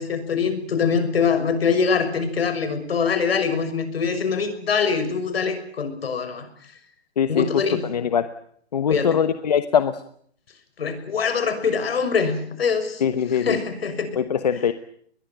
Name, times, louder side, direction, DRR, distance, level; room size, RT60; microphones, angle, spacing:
voice 1, 0.0-6.5 7.3-7.9 8.9-9.2 10.8-13.0 13.3-14.2, left 5 dB, 65° left, 10 dB, 6.1 m, -23 dB
voice 2, 7.8-8.3 8.7-10.0 13.0-13.6 14.2-14.7, left 8 dB, 40° left, 11 dB, 1.1 m, -22 dB
22.0 x 21.5 x 9.3 m, 0.62 s
hypercardioid pair, 180°, 32 cm